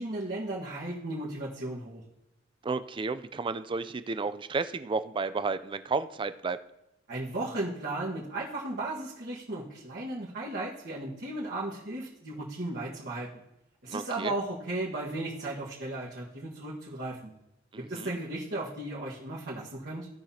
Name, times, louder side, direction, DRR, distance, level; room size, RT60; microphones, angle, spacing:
voice 1, 0.0-2.0 7.1-13.4 13.8-17.3 17.8-20.1, right 2 dB, 55° right, -7 dB, 1.6 m, -35 dB
voice 2, 2.6-6.6 13.9-14.3 17.7-18.2, right 4 dB, 25° right, 12 dB, 0.4 m, -32 dB
16.5 x 5.8 x 2.8 m, 0.86 s
head